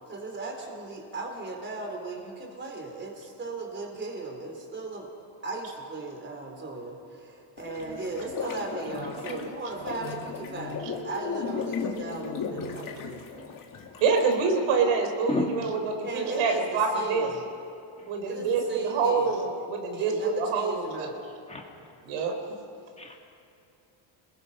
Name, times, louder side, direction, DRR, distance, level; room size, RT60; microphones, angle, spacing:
voice 1, 0.1-5.1 5.4-13.5 16.0-17.4 18.3-19.4 19.9-21.3, right 3 dB, 20° right, 3 dB, 3.9 m, -37 dB
sound 1, 7.6-14.3, left 5 dB, 40° left, 2.2 m, -36 dB
voice 2, 14.0-17.3 18.0-21.1 22.1-22.3, right 4 dB, 85° right, 4 dB, 4.1 m, -26 dB
voice 3, 15.3-15.8 18.0-18.1 21.5-21.6 23.0-23.2, left 2 dB, 15° left, 0 dB, 2.2 m, -31 dB
29.0 x 21.0 x 5.6 m, 2.5 s
cardioid pair, 150°, 50 cm